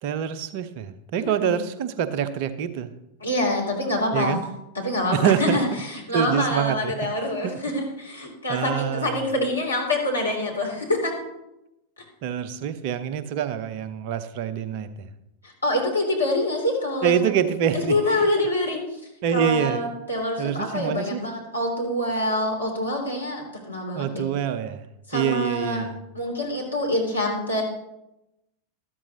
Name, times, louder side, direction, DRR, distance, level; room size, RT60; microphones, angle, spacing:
voice 1, 0.0-2.9 4.1-4.5 5.1-5.6 6.1-6.9 7.4-7.5 8.5-9.3 12.2-15.1 17.0-18.3 19.2-19.8 20.4-21.2 23.9-24.8 25.1-26.0, right 8 dB, 45° right, 13 dB, 0.8 m, -25 dB
voice 2, 1.2-1.5 3.2-4.4 4.7-11.1 15.4-17.3 17.7-19.0 19.3-24.3 25.1-25.8 26.1-27.6, left 1 dB, 80° left, -2 dB, 3.2 m, -26 dB
13.5 x 13.0 x 3.0 m, 0.90 s
figure-of-eight pair, 90°, 0 cm